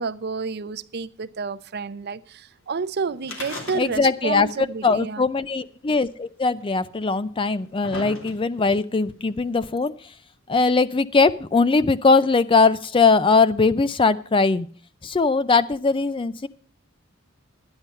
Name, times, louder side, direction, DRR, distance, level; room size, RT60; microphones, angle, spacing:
voice 1, 0.0-5.3, right 5 dB, 55° right, 0.6 m, -30 dB
sound 1, 3.2-4.3 4.5-4.6 5.6-5.7 6.6-6.7 7.4-8.7 9.6-9.7, left 2 dB, 75° left, 2.7 m, -36 dB
voice 2, 3.8-4.5 4.8-9.9 10.5-14.7 15.0-16.5, left 4 dB, 25° left, 0.5 m, -20 dB
12.0 x 9.8 x 5.5 m
head